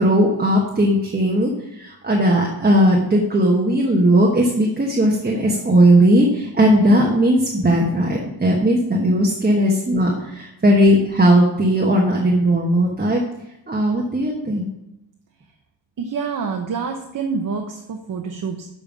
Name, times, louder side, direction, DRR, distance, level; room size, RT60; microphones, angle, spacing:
voice 1, 0.0-13.2 13.7-14.7, right 1 dB, 20° right, -2 dB, 1.1 m, -17 dB
voice 2, 16.0-18.7, right 5 dB, 40° right, 3 dB, 0.8 m, -27 dB
7.0 x 5.3 x 7.1 m, 0.87 s
wide cardioid pair, 160°, 49 cm